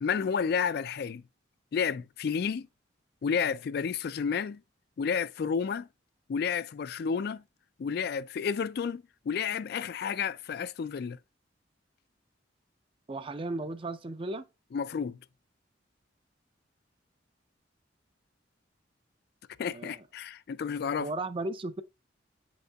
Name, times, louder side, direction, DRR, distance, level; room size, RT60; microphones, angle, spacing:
voice 1, 0.0-1.2 1.7-2.7 3.2-4.6 5.0-5.9 6.3-7.4 7.8-11.2 14.7-15.2 19.6-21.1, left 6 dB, 55° left, 0.3 m, -31 dB
voice 2, 13.1-14.5 19.7-20.0 21.0-21.8, right 2 dB, 30° right, 0.4 m, -35 dB
8.6 x 5.3 x 2.3 m
head